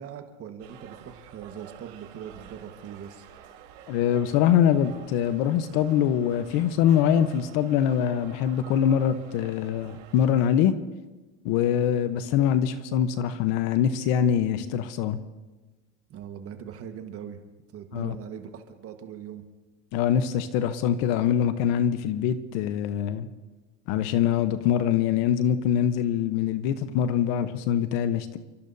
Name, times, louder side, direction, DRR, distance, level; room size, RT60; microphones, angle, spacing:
voice 1, 0.0-3.3 16.1-17.4 17.7-19.4, right 8 dB, 35° right, 5 dB, 1.5 m, -41 dB
sound 1, 0.6-10.3, right 9 dB, 75° right, 3.7 m, -49 dB
voice 2, 3.9-10.7 11.4-15.2 17.9-18.2 19.9-23.3 23.9-28.4, left 9 dB, 55° left, 11 dB, 1.0 m, -24 dB
29.5 x 14.0 x 2.7 m, 1.2 s
supercardioid pair, 125°, 39 cm